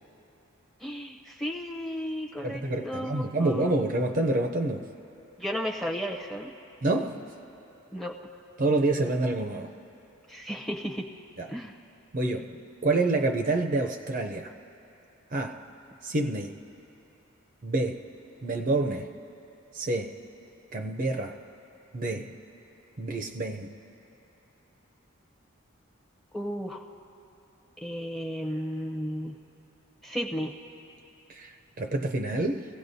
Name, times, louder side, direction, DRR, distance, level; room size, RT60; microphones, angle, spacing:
voice 1, 0.8-3.7 5.4-6.5 7.9-8.2 10.3-11.1 11.5-11.7 26.3-26.8 27.8-29.3 30.0-30.5, equal, ahead, 1 dB, 0.6 m, -34 dB
voice 2, 2.4-4.9 6.8-7.2 8.6-9.7 11.4-11.5 12.1-12.5 12.8-14.5 15.3-15.6 16.0-16.5 17.6-18.0 18.4-19.1 19.7-20.1 20.7-21.4 21.9-22.3 23.0-23.7 31.3-31.5 31.8-32.6, right 2 dB, 40° right, 4 dB, 0.5 m, -27 dB
25.0 x 16.0 x 2.7 m, 3.0 s
head